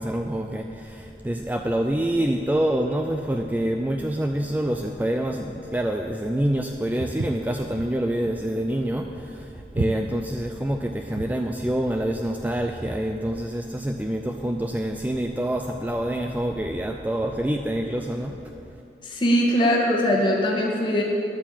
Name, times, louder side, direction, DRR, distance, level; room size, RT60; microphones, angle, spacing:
voice 1, 0.0-18.4, right 1 dB, 10° right, 4 dB, 0.4 m, -26 dB
Walk footsteps, 7.0-11.5, right 2 dB, 70° right, 0.6 m, -32 dB
voice 2, 19.0-21.0, equal, 30° left, -2 dB, 1.7 m, -21 dB
10.5 x 8.7 x 7.5 m, 2.7 s
head